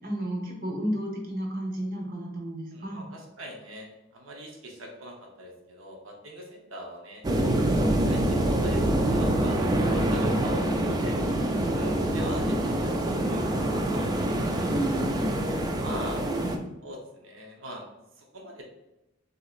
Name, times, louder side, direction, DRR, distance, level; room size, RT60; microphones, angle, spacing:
voice 1, 0.0-3.1 11.3-11.8 14.6-15.5 16.3-16.5, right 1 dB, 45° right, 0 dB, 0.9 m, -32 dB
voice 2, 2.7-7.2 7.8-11.2 11.7-14.7 15.2-15.4 15.8-16.2 16.8-17.8 18.2-18.6, equal, 90° right, 0 dB, 0.8 m, -42 dB
sound 1, 7.2-16.6, right 1 dB, 20° right, 0.3 m, -26 dB
6.5 x 2.8 x 2.4 m, 0.93 s
head